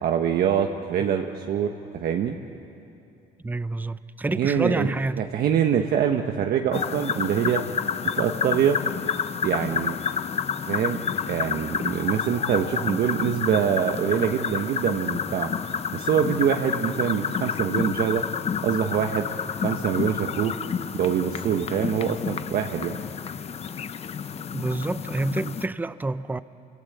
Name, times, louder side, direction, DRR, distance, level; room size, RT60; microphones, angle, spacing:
voice 1, 0.0-2.4 4.3-4.9 5.2-7.6 8.0-8.8 9.4-10.0 10.6-15.5 15.9-18.2 18.6-19.3 19.5-20.5 20.9-23.0, right 8 dB, 65° right, 1.2 m, -24 dB
voice 2, 3.4-5.2 24.5-26.4, right 2 dB, 10° right, 0.6 m, -28 dB
sound 1, 6.7-25.7, left 7 dB, 40° left, 0.7 m, -29 dB
28.0 x 25.0 x 8.1 m
cardioid pair, 110°, 17 cm